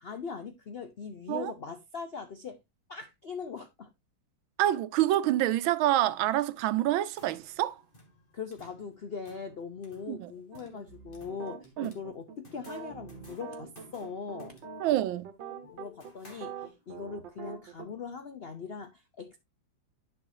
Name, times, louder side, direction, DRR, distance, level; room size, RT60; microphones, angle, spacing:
voice 1, 0.0-2.6 2.9-3.9 8.3-14.5 15.6-19.4, left 5 dB, 85° left, 0.5 m, -41 dB
voice 2, 4.6-7.8 10.1-10.3 11.8-11.9 14.8-15.3, right 14 dB, 90° right, 1.4 m, -27 dB
sound 1, 6.9-17.0, left 1 dB, 25° left, 2.0 m, -57 dB
sound 2, 10.5-17.9, right 6 dB, 70° right, 1.8 m, -44 dB
10.5 x 5.8 x 2.7 m
omnidirectional pair, 2.1 m